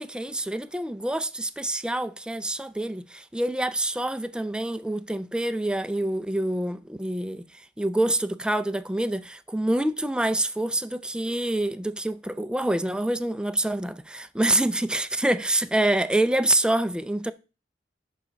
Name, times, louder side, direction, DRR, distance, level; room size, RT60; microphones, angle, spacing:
voice 1, 0.0-17.3, right 1 dB, 5° right, 0.4 m, -26 dB
5.6 x 5.1 x 6.3 m
head